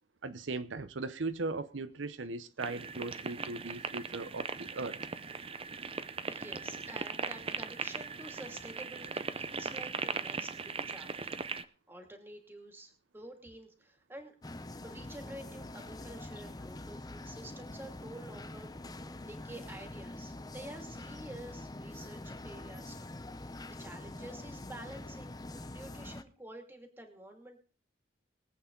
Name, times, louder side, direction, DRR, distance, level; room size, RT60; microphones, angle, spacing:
voice 1, 0.2-5.1, right 3 dB, 85° right, 0.8 m, -38 dB
sound 1, 2.6-11.6, right 4 dB, 30° right, 0.6 m, -39 dB
voice 2, 6.2-11.4 11.9-14.3 14.8-25.4 25.7-27.6, right 1 dB, 10° right, 2.4 m, -49 dB
sound 2, 14.4-26.2, left 2 dB, 20° left, 0.6 m, -45 dB
22.5 x 8.4 x 3.9 m
head